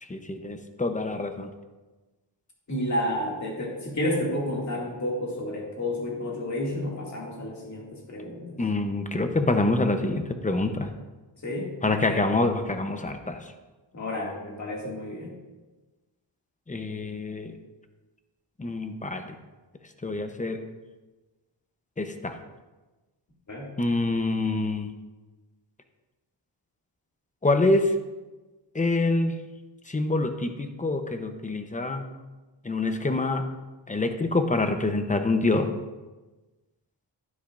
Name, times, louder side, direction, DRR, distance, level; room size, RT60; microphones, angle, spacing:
voice 1, 0.1-1.5 8.6-10.9 11.8-13.4 16.7-17.5 18.6-19.2 20.0-20.6 22.0-22.3 23.8-24.9 27.4-27.9 28.7-29.4 29.9-32.0 32.6-33.4 33.9-35.7, left 2 dB, 15° left, 7 dB, 0.8 m, -26 dB
voice 2, 2.7-8.6 11.4-12.2 13.9-15.3 23.5-23.7, left 1 dB, 35° left, -2 dB, 2.4 m, -31 dB
12.0 x 10.0 x 2.6 m, 1.2 s
wide cardioid pair, 115°, 46 cm